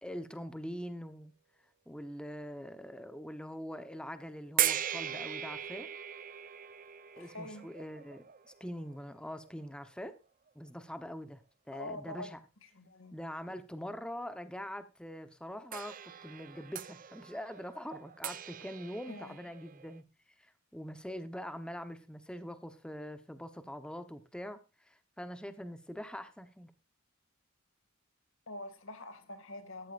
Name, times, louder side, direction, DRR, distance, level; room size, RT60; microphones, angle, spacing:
voice 1, 0.0-1.3 1.9-5.9 7.2-10.1 10.5-11.4 11.7-12.4 13.1-15.9 16.2-20.0 20.4-24.6 24.9-26.7, equal, 5° left, 10 dB, 1.0 m, -43 dB
sound 1, 4.6-9.6 10.5-10.6 15.7-20.0, right 10 dB, 40° right, 0.7 m, -38 dB
voice 2, 7.2-7.7 11.7-12.3 12.6-13.2 19.1-19.4 28.5-29.9, left 1 dB, 65° left, 9 dB, 2.2 m, -45 dB
14.0 x 11.5 x 2.5 m, 0.30 s
head